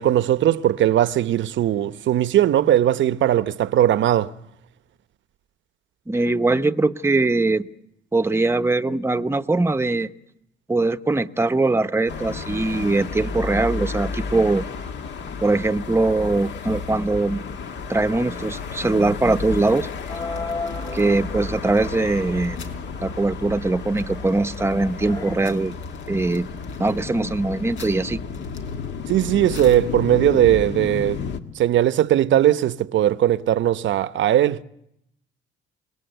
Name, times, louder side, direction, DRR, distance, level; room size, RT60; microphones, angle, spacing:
voice 1, 0.0-4.3 29.1-31.2 31.6-34.6, right 12 dB, 70° right, 0.8 m, -19 dB
voice 2, 6.1-7.6 8.1-10.1 10.7-14.6 15.4-17.4 17.9-19.9 20.9-22.6 23.0-25.8 26.1-26.5 26.8-28.2, right 2 dB, 10° right, 0.8 m, -21 dB
sound 1, 12.1-31.4, left 5 dB, 65° left, 1.9 m, -32 dB
sound 2, 19.2-22.8 23.2-23.3 23.5-24.8 25.2-30.2, left 6 dB, 80° left, 4.1 m, -49 dB
sound 3, 20.1-25.4, left 3 dB, 20° left, 1.5 m, -37 dB
29.0 x 19.0 x 8.0 m
cardioid pair, 90°, 20 cm